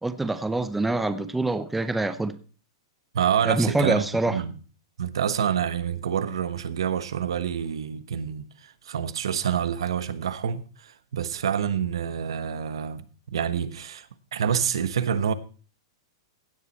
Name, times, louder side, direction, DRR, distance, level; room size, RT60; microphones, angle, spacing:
voice 1, 0.0-2.4 3.4-4.4, right 2 dB, 5° right, 0.6 m, -25 dB
voice 2, 3.1-4.6 5.0-13.1 13.3-14.1 14.3-15.3, right 8 dB, 90° right, 1.1 m, -27 dB
16.0 x 7.4 x 4.2 m
supercardioid pair, 160°, 3 cm